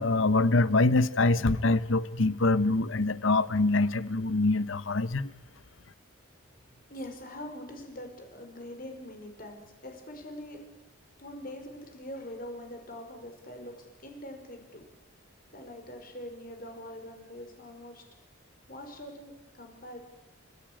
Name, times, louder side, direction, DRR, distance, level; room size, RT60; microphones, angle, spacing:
voice 1, 0.0-5.3, left 2 dB, 65° left, 0.9 m, -24 dB
voice 2, 6.7-10.6 11.2-14.9 15.5-18.0 18.7-20.0, left 1 dB, 45° left, 5.3 m, -43 dB
29.5 x 15.5 x 9.0 m
head